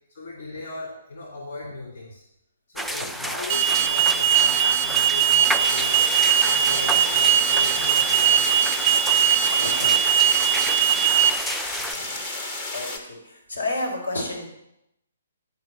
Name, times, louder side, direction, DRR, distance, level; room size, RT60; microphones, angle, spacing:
voice 1, 0.1-2.2 2.7-6.1 6.4-8.5, left 2 dB, 50° left, -4 dB, 2.7 m, -38 dB
sound 1, 2.8-11.9, equal, ahead, 0.3 m, -31 dB
voice 2, 2.9-3.3 6.8-6.9 9.5-10.0 11.9-12.2 12.7-14.4, left 2 dB, 80° left, -4 dB, 4.0 m, -31 dB
Alarm, 3.5-11.3, right 9 dB, 15° right, 0.9 m, -20 dB
sound 2, 5.6-13.0, left 2 dB, 30° left, 1.2 m, -32 dB
10.5 x 4.9 x 6.9 m, 0.82 s
figure-of-eight pair, 130°, 0 cm